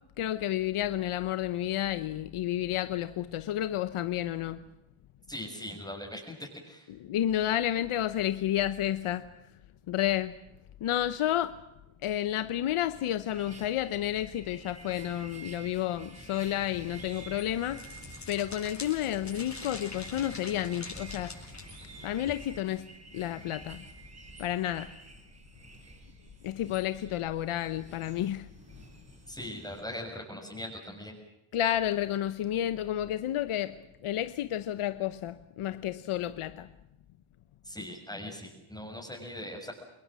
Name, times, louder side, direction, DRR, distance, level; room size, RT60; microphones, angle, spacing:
voice 1, 0.2-4.6 7.0-9.3 9.9-10.4 10.8-11.6 12.0-17.8 18.3-21.3 22.0-22.9 23.1-23.8 24.4-24.9 26.4-28.5 31.5-36.7, left 12 dB, 80° left, 1.0 m, -31 dB
voice 2, 5.3-6.9 29.3-31.1 37.6-39.7, left 1 dB, 5° left, 6.7 m, -40 dB
sound 1, 13.2-29.8, right 3 dB, 30° right, 7.5 m, -50 dB
sound 2, 16.6-22.5, left 3 dB, 35° left, 7.5 m, -46 dB
26.5 x 21.0 x 7.6 m
cardioid pair, 75°, 50 cm